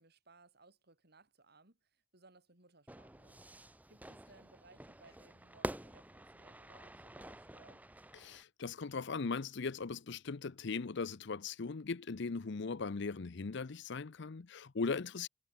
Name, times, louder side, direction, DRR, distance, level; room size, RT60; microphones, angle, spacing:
voice 1, 0.0-3.4 3.9-7.9, right 3 dB, 55° right, 4.0 m, -64 dB
Fire / Fireworks, 2.9-8.4, right 1 dB, 10° right, 1.0 m, -47 dB
voice 2, 8.1-15.3, left 4 dB, 65° left, 0.7 m, -39 dB
head